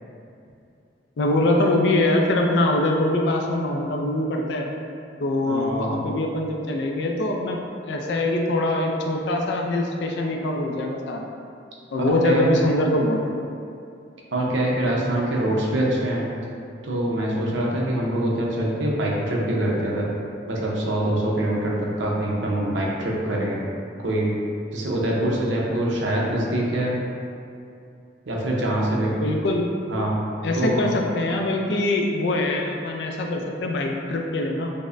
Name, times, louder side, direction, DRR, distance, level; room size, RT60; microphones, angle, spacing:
voice 1, 1.2-4.7 5.2-7.6 7.9-11.2 11.9-13.3 29.2-29.7 30.4-34.7, left 1 dB, 70° left, 1 dB, 0.4 m, -23 dB
voice 2, 5.5-6.0 12.1-12.6 14.3-16.3 16.8-20.1 20.5-23.6 24.0-24.3 24.7-27.0 28.3-29.2 29.9-30.2 30.5-30.9, right 1 dB, 85° right, -3 dB, 0.7 m, -24 dB
5.2 x 2.1 x 2.5 m, 2.5 s
head